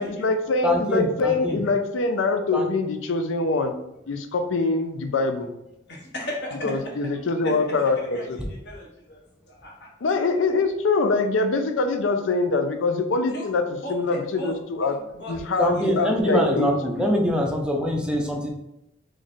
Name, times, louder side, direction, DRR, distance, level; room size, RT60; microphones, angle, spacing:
voice 1, 0.0-3.7 4.1-5.5 6.6-8.4 10.0-13.6 13.9-14.9 15.3-17.1, left 3 dB, 75° left, 7 dB, 0.5 m, -24 dB
voice 2, 0.6-1.6 2.5-2.7 15.6-18.5, equal, 5° right, 1 dB, 0.4 m, -24 dB
voice 3, 5.9-6.9 7.4-7.5 7.8-9.9 13.3-13.5 13.8-14.5 14.8-15.3 15.7-15.8, equal, 60° left, -2 dB, 0.9 m, -37 dB
3.2 x 2.4 x 4.1 m, 0.86 s
head